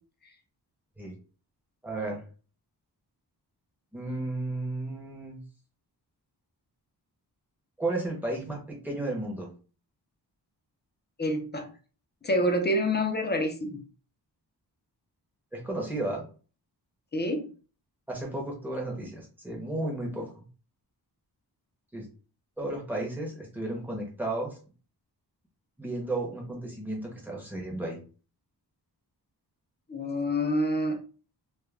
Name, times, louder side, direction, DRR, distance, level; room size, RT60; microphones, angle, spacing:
voice 1, 1.8-2.2 3.9-5.4 7.8-9.5 15.5-16.3 18.1-20.4 21.9-22.1 22.6-24.6 25.8-28.0, right 2 dB, 5° right, -2 dB, 0.7 m, -33 dB
voice 2, 11.2-11.7 12.2-13.8 17.1-17.5 29.9-31.0, left 1 dB, 25° left, 3 dB, 0.4 m, -27 dB
2.3 x 2.1 x 3.2 m, 0.37 s
wide cardioid pair, 180°, 42 cm